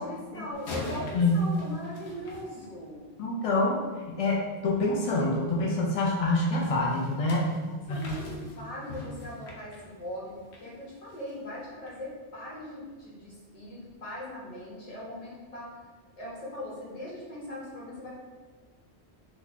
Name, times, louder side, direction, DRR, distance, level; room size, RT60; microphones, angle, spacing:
voice 1, 0.0-3.0 7.9-15.7 16.2-18.1, left 1 dB, 35° left, -7 dB, 1.1 m, -40 dB
sound 1, 0.5-3.1 6.9-10.7 11.1-11.3 11.9-12.0, left 2 dB, 75° left, 1.0 m, -42 dB
voice 2, 1.1-1.5 3.2-3.8 4.2-7.5 7.9-8.0, left 2 dB, 60° left, -3 dB, 0.3 m, -26 dB
2.9 x 2.2 x 3.9 m, 1.4 s
omnidirectional pair, 1.1 m